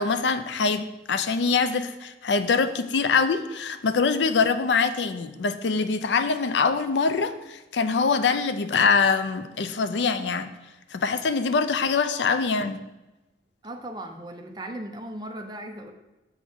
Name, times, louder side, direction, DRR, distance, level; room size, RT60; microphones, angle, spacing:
voice 1, 0.0-10.5 10.9-12.8, left 5 dB, 90° left, 10 dB, 0.5 m, -24 dB
voice 2, 13.6-15.9, right 1 dB, 25° right, 4 dB, 0.7 m, -37 dB
7.0 x 3.9 x 6.2 m, 1.0 s
head